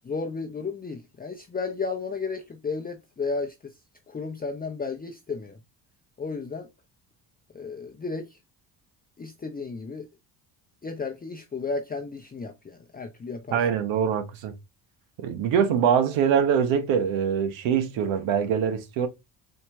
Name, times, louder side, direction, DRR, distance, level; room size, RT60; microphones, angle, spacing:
voice 1, 0.0-3.7 4.1-5.6 6.2-6.7 7.5-8.4 9.2-10.1 10.8-13.6, left 4 dB, 20° left, 0.6 m, -33 dB
voice 2, 13.5-14.5 15.2-19.1, right 7 dB, 75° right, 1.0 m, -23 dB
4.4 x 2.8 x 3.3 m
supercardioid pair, 60°, 46 cm